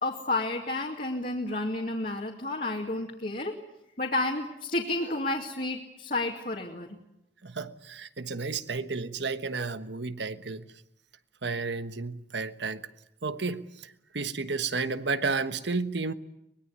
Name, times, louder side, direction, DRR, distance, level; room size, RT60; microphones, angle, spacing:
voice 1, 0.0-3.6 4.0-6.9, left 2 dB, 50° left, 2.4 m, -31 dB
voice 2, 7.4-10.7 11.4-12.9 13.2-16.1, right 4 dB, 75° right, 1.3 m, -32 dB
24.0 x 21.5 x 9.6 m
head